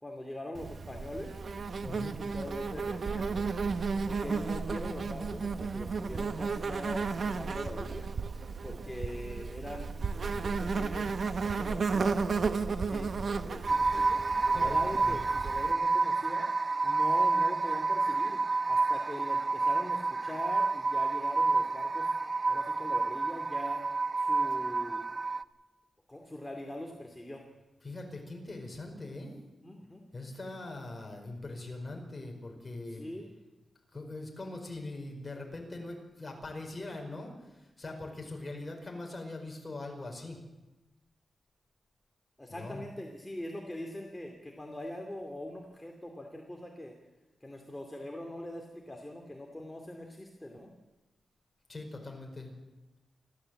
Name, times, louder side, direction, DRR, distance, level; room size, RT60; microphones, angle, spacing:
voice 1, 0.0-1.4 1.8-3.4 4.0-8.1 8.6-12.2 12.8-14.2 14.5-16.5 16.8-18.4 18.7-22.1 22.5-23.9 24.2-25.0 26.1-27.4 29.6-30.0 32.9-33.4 42.4-46.9 47.4-50.7, left 1 dB, 10° left, 1 dB, 2.5 m, -42 dB
Insect, 0.5-15.7, right 4 dB, 55° right, 1.2 m, -33 dB
voice 2, 1.9-2.2 14.5-15.2 27.8-29.4 30.1-33.0 33.9-40.4 42.5-42.8 51.7-52.5, left 2 dB, 25° left, 2 dB, 5.0 m, -42 dB
sound 1, 13.7-25.4, right 3 dB, 35° right, 0.6 m, -29 dB
28.5 x 12.5 x 7.8 m, 1.1 s
wide cardioid pair, 110°, 0 cm